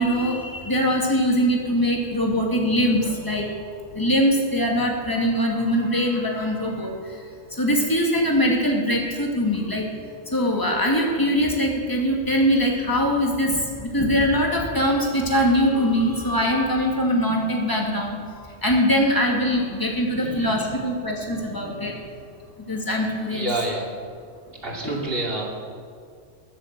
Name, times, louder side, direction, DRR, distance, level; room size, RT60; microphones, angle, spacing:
voice 1, 0.0-3.5 3.9-9.9 10.3-22.1 22.7-23.5 24.8-25.0, equal, 15° left, -1 dB, 2.5 m, -22 dB
voice 2, 20.2-20.7 23.3-23.8 24.6-25.4, right 2 dB, 50° right, -2 dB, 2.9 m, -28 dB
22.0 x 7.6 x 7.6 m, 2.1 s
omnidirectional pair, 1.3 m